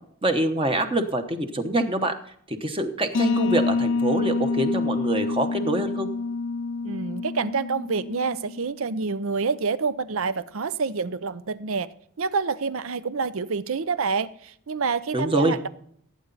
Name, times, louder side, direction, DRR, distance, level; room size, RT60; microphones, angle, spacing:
voice 1, 0.2-2.2 2.5-6.1 15.1-15.6, right 1 dB, 25° right, 6 dB, 1.0 m, -25 dB
sound 1, 3.1-8.7, left 3 dB, 55° left, 0.6 m, -27 dB
voice 2, 6.8-11.9 12.2-15.7, right 5 dB, 70° right, 15 dB, 0.6 m, -27 dB
16.0 x 8.9 x 4.0 m, 0.65 s
head